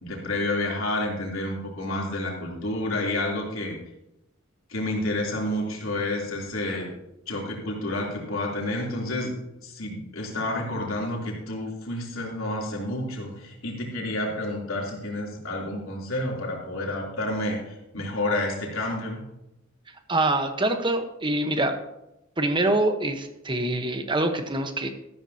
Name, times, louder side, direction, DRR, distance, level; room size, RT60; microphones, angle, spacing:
voice 1, 0.0-3.8 4.7-6.9 7.3-9.3 9.6-19.2, left 1 dB, 80° left, -2 dB, 3.3 m, -29 dB
voice 2, 20.1-21.8 22.4-24.9, right 2 dB, 25° right, 6 dB, 1.1 m, -25 dB
13.5 x 12.5 x 2.9 m, 0.88 s
head